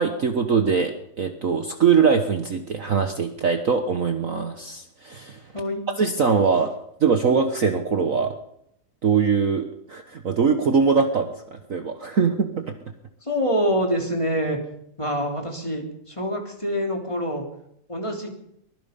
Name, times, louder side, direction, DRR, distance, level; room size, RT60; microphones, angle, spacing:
voice 1, 0.0-5.4 6.0-6.7 7.0-8.3 9.0-12.7, right 5 dB, 60° right, 6 dB, 0.8 m, -22 dB
voice 2, 13.2-14.6 15.0-17.4 17.9-18.3, equal, 10° left, 1 dB, 3.3 m, -25 dB
23.5 x 20.5 x 5.4 m, 0.75 s
omnidirectional pair, 3.4 m